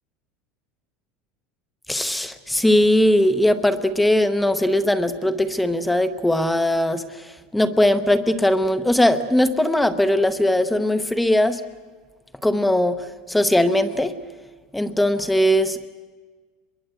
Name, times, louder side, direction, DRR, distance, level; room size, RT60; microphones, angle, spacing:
voice 1, 1.9-7.0 7.5-11.6 12.4-13.0 13.3-14.1 14.7-15.9, left 1 dB, 5° left, 11 dB, 0.8 m, -19 dB
24.0 x 22.0 x 8.1 m, 1.4 s
cardioid pair, 175°, 0 cm